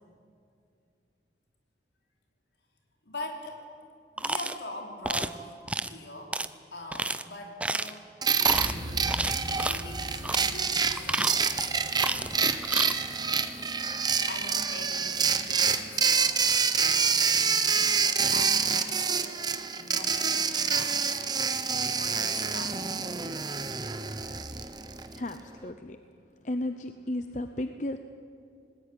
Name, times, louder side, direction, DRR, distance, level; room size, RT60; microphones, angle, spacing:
voice 1, 3.0-3.6 4.2-6.4 6.7-8.1 9.5-12.6 14.3-21.5 21.9-23.1, left 2 dB, 70° left, 1 dB, 4.5 m, -43 dB
sound 1, 4.2-4.6 5.0-5.3 5.7-5.9 6.3-6.5 6.9-7.2 7.6-8.0 8.4-8.7 9.1-9.8 10.2-10.5 10.9-11.7 12.0-12.4 12.6-12.9, right 2 dB, 5° right, 0.6 m, -30 dB
sound 2, 8.2-25.2, right 5 dB, 25° right, 1.0 m, -27 dB
sound 3, 8.5-17.5, equal, 55° right, 4.4 m, -43 dB
voice 2, 25.1-26.0 26.4-28.0, left 1 dB, 40° left, 8 dB, 0.8 m, -34 dB
25.5 x 19.5 x 9.8 m, 2.4 s
head